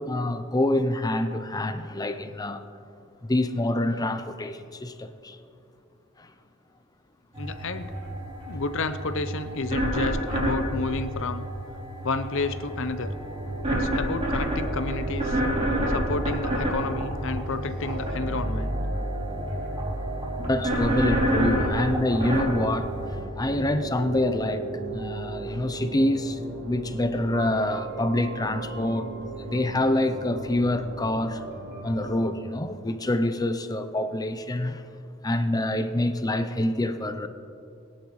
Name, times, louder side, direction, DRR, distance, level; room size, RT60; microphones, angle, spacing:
voice 1, 0.0-2.6 3.2-5.4 6.2-6.3 20.4-29.1 29.4-31.4 31.8-34.8 35.2-37.3, left 1 dB, 20° left, 0.6 m, -26 dB
sound 1, 7.3-23.2, equal, 30° right, 3.7 m, -29 dB
voice 2, 7.4-7.9 8.5-11.4 12.0-13.1 13.7-15.4 15.9-18.8, left 3 dB, 65° left, 0.7 m, -31 dB
sound 2, 12.7-32.1, right 2 dB, 50° right, 1.5 m, -35 dB
22.0 x 10.5 x 3.2 m
head